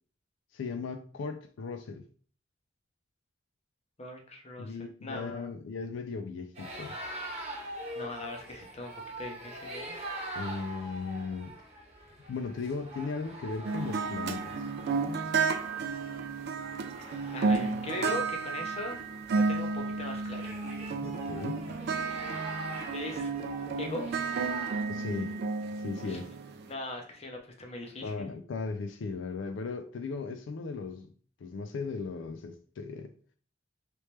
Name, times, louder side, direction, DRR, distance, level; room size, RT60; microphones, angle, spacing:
voice 1, 0.5-2.1 4.6-7.0 10.4-11.5 12.3-14.6 21.0-21.7 24.9-25.4 25.8-26.3 28.0-31.1 31.4-33.1, left 4 dB, 75° left, 0.4 m, -37 dB
voice 2, 4.0-4.7 5.0-5.5 7.9-10.0 16.9-19.0 19.3-20.5 22.1-22.4 22.9-23.3 23.8-24.1 26.1-26.2 26.7-28.3, left 2 dB, 35° left, 0.7 m, -40 dB
sound 1, 6.5-24.8, right 1 dB, 35° right, 1.0 m, -44 dB
sound 2, 13.6-26.7, right 4 dB, 60° right, 0.4 m, -32 dB
3.1 x 3.0 x 3.2 m
head